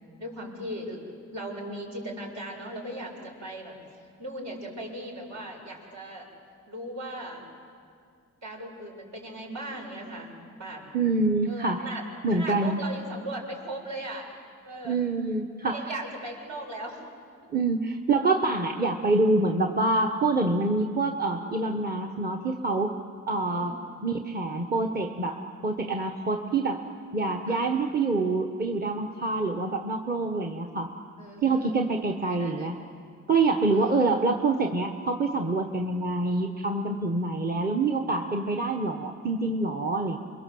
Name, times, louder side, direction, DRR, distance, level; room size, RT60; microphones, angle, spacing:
voice 1, 0.2-1.0 1.3-3.7 4.2-6.3 6.7-7.4 8.4-10.9 11.5-12.0 12.3-14.3 14.6-15.0 15.6-17.0 23.5-23.9 27.5-27.7 31.2-31.8 32.2-32.8 33.7-34.1, right 1 dB, 65° right, -1 dB, 6.8 m, -38 dB
voice 2, 10.9-11.8 12.2-12.8 14.8-15.8 17.5-23.0 23.3-23.7 24.0-26.8 27.1-30.9 31.4-32.8 33.3-40.2, right 3 dB, 30° right, 3 dB, 1.3 m, -26 dB
28.0 x 22.5 x 7.9 m, 2.2 s
cardioid pair, 95°, 31 cm